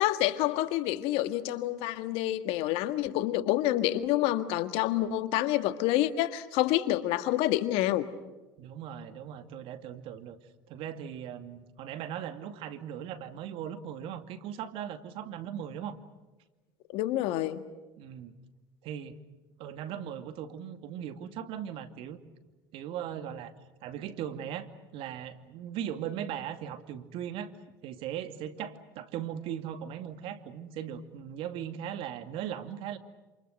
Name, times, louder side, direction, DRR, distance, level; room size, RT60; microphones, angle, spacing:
voice 1, 0.0-8.1 16.9-17.6, left 14 dB, 65° left, 10 dB, 1.8 m, -28 dB
voice 2, 8.6-10.4 10.7-16.0 18.0-18.3 18.8-19.2 19.6-22.2 22.7-23.5 23.8-24.7 24.9-27.5 27.8-33.0, right 9 dB, 60° right, 9 dB, 2.5 m, -38 dB
28.0 x 28.0 x 6.6 m, 1.1 s
hypercardioid pair, 90°, 10 cm